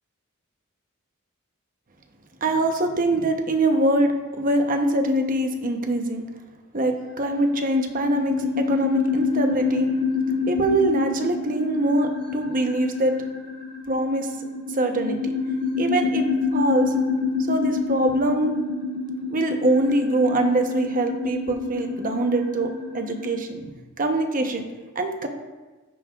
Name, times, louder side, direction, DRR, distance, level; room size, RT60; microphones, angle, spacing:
voice 1, 2.4-6.2 6.7-9.9 10.4-13.2 13.9-14.3 14.7-15.3 15.8-16.2 16.5-16.9 17.5-18.6 19.3-23.7 24.0-24.7 24.9-25.3, right 1 dB, 40° right, 4 dB, 0.9 m, -23 dB
sound 1, 7.0-23.4, left 4 dB, 80° right, 2.2 m, -27 dB
15.0 x 5.5 x 2.4 m, 1.2 s
head